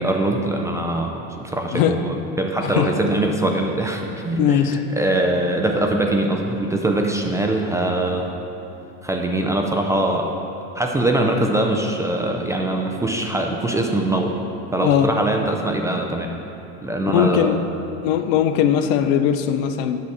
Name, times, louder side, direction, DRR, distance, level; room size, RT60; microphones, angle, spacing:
voice 1, 0.0-8.3 9.0-10.3 10.7-14.3 14.7-16.3 16.8-17.5, right 1 dB, 10° right, 2 dB, 0.4 m, -22 dB
voice 2, 2.6-3.0 4.4-4.8 14.8-15.1 17.0-17.6 18.0-20.0, left 9 dB, 60° left, 10 dB, 0.6 m, -19 dB
8.5 x 6.1 x 4.8 m, 2.9 s
supercardioid pair, 125°, 36 cm